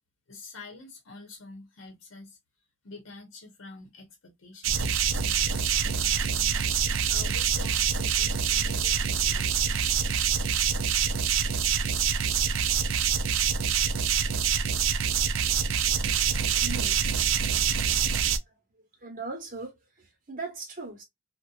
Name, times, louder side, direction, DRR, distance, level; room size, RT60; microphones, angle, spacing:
voice 1, 0.3-2.4 2.8-5.0 5.3-6.6 6.8-10.0, left 3 dB, 85° left, 0.8 m, -47 dB
sound 1, 4.6-18.4, right 7 dB, 75° right, 0.4 m, -26 dB
voice 2, 15.6-16.3 16.5-17.1 19.0-21.0, right 3 dB, 45° right, 1.0 m, -40 dB
2.7 x 2.2 x 2.3 m
head